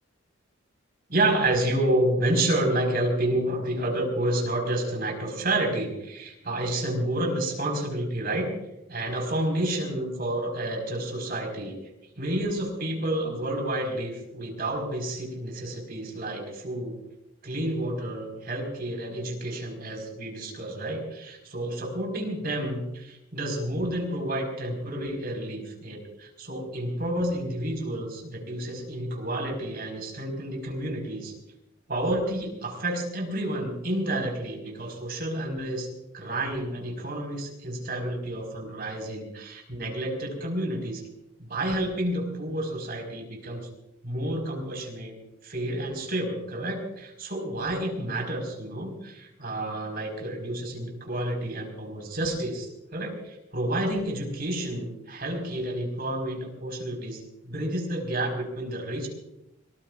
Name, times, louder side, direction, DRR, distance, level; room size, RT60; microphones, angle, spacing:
voice 1, 1.1-8.5 8.9-11.9 12.2-16.9 17.4-31.3 31.9-35.9 36.1-41.0 41.4-43.7 44.0-45.1 45.4-59.1, right 1 dB, 50° right, 1 dB, 5.1 m, -30 dB
24.0 x 20.0 x 2.5 m, 0.88 s
head